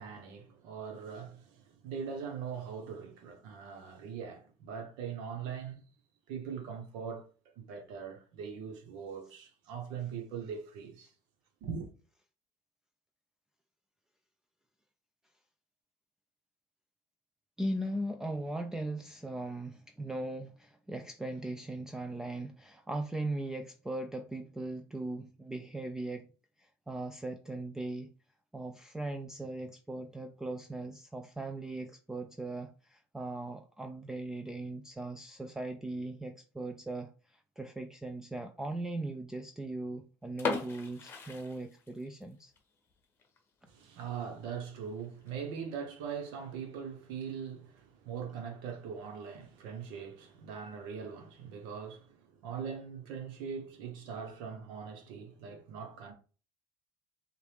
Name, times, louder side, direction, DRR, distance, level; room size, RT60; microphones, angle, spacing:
voice 1, 0.0-5.8 6.3-7.3 7.6-11.1 11.6-11.9 43.7-56.1, right 6 dB, 70° right, 1.1 m, -41 dB
voice 2, 17.6-26.3 26.6-28.1 28.5-42.5, right 2 dB, 5° right, 0.3 m, -39 dB
sound 1, 40.3-42.2 42.6-42.7 43.2-43.4 43.8-43.9 44.1-44.2 45.0-45.3, left 4 dB, 25° left, 0.9 m, -37 dB
4.6 x 2.5 x 3.4 m
cardioid pair, 125°, 8 cm